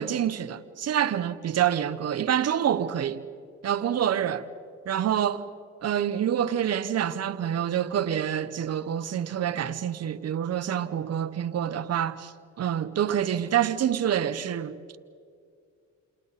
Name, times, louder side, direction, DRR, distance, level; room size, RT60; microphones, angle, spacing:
voice 1, 0.0-3.2 3.6-4.5 4.9-5.5 5.8-15.0, right 9 dB, 55° right, 1.1 m, -27 dB
29.0 x 28.0 x 4.2 m
cardioid pair, 90°, 30 cm